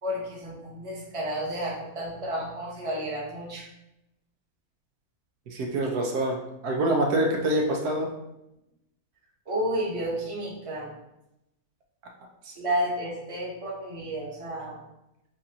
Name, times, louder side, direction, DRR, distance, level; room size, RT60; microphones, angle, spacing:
voice 1, 0.0-3.7 9.5-10.9 12.6-14.8, equal, 25° right, -3 dB, 0.9 m, -31 dB
voice 2, 5.5-6.4 6.6-8.1 12.5-12.6, right 1 dB, 90° right, 1 dB, 1.3 m, -25 dB
6.9 x 2.5 x 2.8 m, 0.89 s
omnidirectional pair, 1.6 m